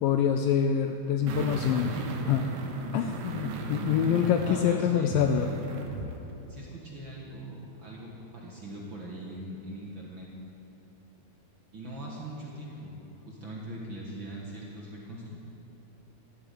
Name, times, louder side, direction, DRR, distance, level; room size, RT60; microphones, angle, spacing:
voice 1, 0.0-2.0 2.3-2.5 2.9-5.5, left 8 dB, 85° left, 6 dB, 2.0 m, -25 dB
sound 1, 1.3-6.2 6.5-6.6, right 4 dB, 85° right, 3.2 m, -37 dB
voice 2, 4.4-5.6 6.5-10.3 11.7-15.4, right 1 dB, 65° right, -3 dB, 1.2 m, -41 dB
13.0 x 8.8 x 9.0 m, 2.9 s
omnidirectional pair, 4.6 m